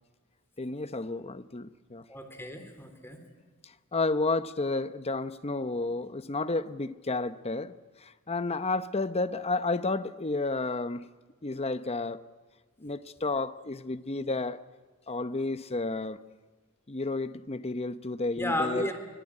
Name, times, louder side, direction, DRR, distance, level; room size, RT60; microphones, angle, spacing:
voice 1, 0.6-2.1 3.9-7.7 8.0-11.1 11.4-12.3 12.8-14.6 15.1-16.2 16.9-18.9, left 3 dB, 30° left, 0.8 m, -31 dB
voice 2, 2.1-3.2 18.4-18.9, left 1 dB, 10° left, 3.5 m, -33 dB
25.0 x 19.5 x 9.9 m
head